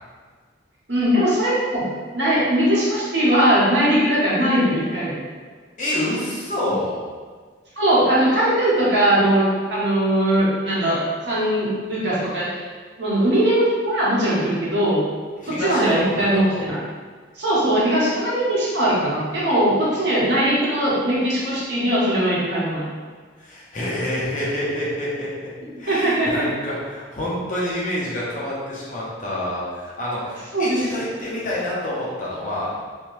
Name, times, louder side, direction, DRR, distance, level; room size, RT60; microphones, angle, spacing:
voice 1, 0.9-1.8 2.1-5.2 6.6-6.7 7.8-11.0 11.3-12.6 13.0-15.0 15.5-16.8 17.4-22.8 25.9-26.5 30.5-30.8, right 1 dB, 65° right, -8 dB, 1.1 m, -20 dB
voice 2, 5.8-7.0 15.4-16.6 23.4-25.5 25.8-32.7, left 1 dB, 40° left, -7 dB, 0.8 m, -27 dB
3.5 x 2.2 x 3.0 m, 1.5 s
head